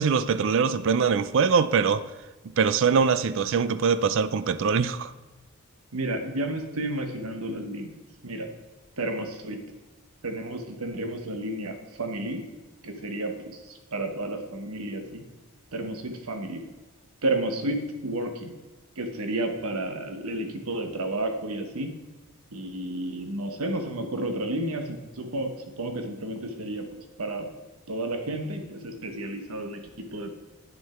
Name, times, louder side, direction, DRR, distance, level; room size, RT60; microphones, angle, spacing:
voice 1, 0.0-2.1 2.6-5.1, right 6 dB, 60° right, 0.4 m, -23 dB
voice 2, 5.9-7.9 8.2-8.5 9.0-9.6 10.2-12.4 12.8-13.6 13.9-15.2 15.7-16.6 17.2-18.5 19.0-21.9 22.5-25.5 25.8-27.5 27.9-30.4, right 1 dB, 75° right, 1.1 m, -31 dB
8.9 x 6.5 x 4.3 m
head